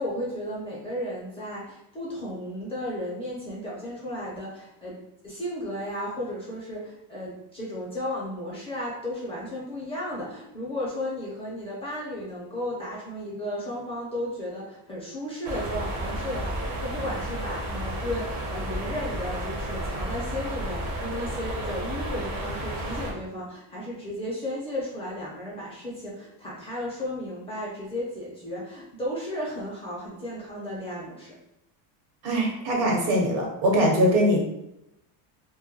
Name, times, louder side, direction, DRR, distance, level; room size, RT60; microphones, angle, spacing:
voice 1, 0.0-5.0 5.2-31.4, left 1 dB, 15° left, -7 dB, 0.4 m, -34 dB
sound 1, 15.4-23.1, right 1 dB, 35° right, 0.5 m, -32 dB
voice 2, 32.2-34.4, equal, 75° right, -1 dB, 1.0 m, -22 dB
2.2 x 2.1 x 2.7 m, 0.83 s
cardioid pair, 135°, 48 cm